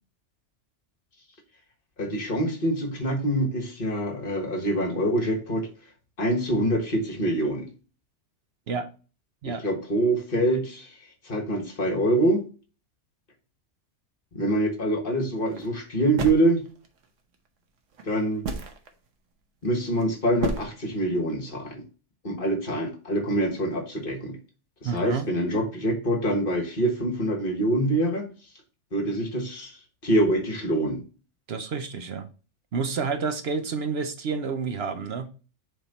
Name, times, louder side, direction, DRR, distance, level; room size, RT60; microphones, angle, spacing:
voice 1, 2.0-5.7 6.2-7.7 9.4-10.9 11.2-12.4 14.3-16.6 18.0-18.4 19.6-21.8 22.2-24.4 24.8-28.3 28.9-29.8 30.0-31.0, right 1 dB, 50° left, 1.5 m, -25 dB
sound 1, 15.4-15.7 16.2-17.0 17.9-18.0 18.4-18.9 19.7-20.0 20.4-20.7, right 3 dB, 90° right, 1.3 m, -31 dB
voice 2, 24.8-25.3 31.5-32.3 32.7-35.3, right 5 dB, 65° right, 0.9 m, -29 dB
7.2 x 3.6 x 4.0 m
omnidirectional pair, 1.2 m